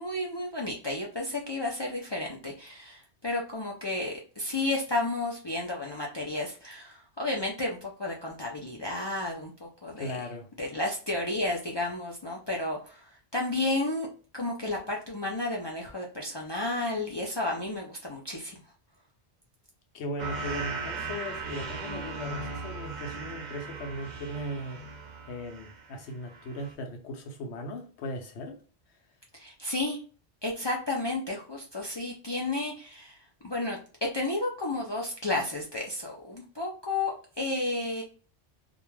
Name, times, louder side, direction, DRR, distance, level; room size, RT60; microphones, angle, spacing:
voice 1, 0.0-10.2 10.6-14.1 14.3-18.6 29.3-30.0 30.4-33.2 33.4-33.8 34.1-38.0, left 2 dB, 45° left, 0.3 m, -32 dB
voice 2, 10.0-10.5 19.9-24.8 25.3-28.6, equal, 85° left, 0.9 m, -38 dB
sound 1, 20.2-26.0 26.3-26.7, right 3 dB, 50° right, 0.6 m, -38 dB
2.4 x 2.2 x 3.1 m
omnidirectional pair, 1.1 m